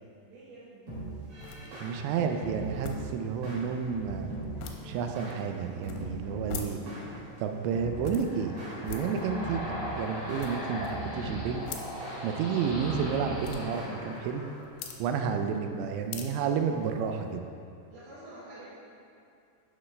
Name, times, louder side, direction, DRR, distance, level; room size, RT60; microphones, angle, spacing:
voice 1, 0.2-0.9 9.0-9.3 17.9-18.7, right 2 dB, 65° right, -14 dB, 3.4 m, -48 dB
sound 1, 0.9-17.4, left 6 dB, 85° left, 2.5 m, -47 dB
sound 2, 0.9-14.6, right 2 dB, 45° right, 2.2 m, -42 dB
voice 2, 1.8-4.4 4.8-6.8 7.1-8.5 8.8-9.6 10.0-11.7 12.2-14.4 15.0-17.4, right 6 dB, 85° right, 5 dB, 2.7 m, -31 dB
sound 3, 7.5-15.1, left 1 dB, 45° left, 1.5 m, -40 dB
9.5 x 6.2 x 3.2 m, 2.4 s
omnidirectional pair, 5.2 m